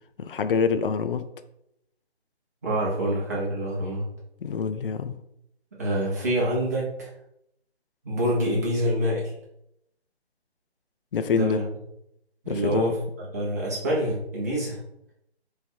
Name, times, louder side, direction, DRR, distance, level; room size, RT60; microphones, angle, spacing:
voice 1, 0.2-1.3 4.4-5.1 11.1-11.6 12.5-12.9, left 5 dB, 55° left, 10 dB, 0.4 m, -25 dB
voice 2, 2.6-4.1 5.8-7.1 8.0-9.3 11.3-11.6 12.4-13.0 13.3-14.8, right 1 dB, 15° right, -5 dB, 0.6 m, -26 dB
3.3 x 3.2 x 4.3 m, 0.78 s
figure-of-eight pair, 155°, 33 cm